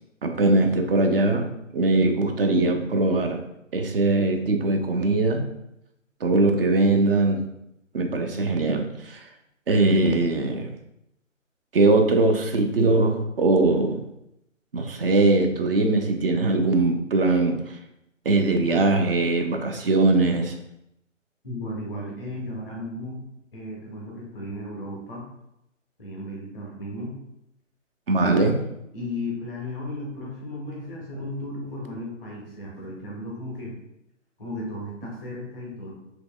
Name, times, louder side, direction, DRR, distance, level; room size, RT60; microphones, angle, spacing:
voice 1, 0.2-3.4 3.7-5.4 6.2-7.4 7.9-9.2 9.7-10.7 11.7-14.0 14.7-17.8 18.3-20.6 28.1-28.6, right 2 dB, 45° right, 5 dB, 0.5 m, -21 dB
voice 2, 21.4-23.2 23.5-25.2 26.0-27.1 28.9-33.7 34.4-35.9, left 1 dB, ahead, -3 dB, 0.6 m, -35 dB
4.3 x 2.9 x 2.3 m, 0.82 s
figure-of-eight pair, 145°, 39 cm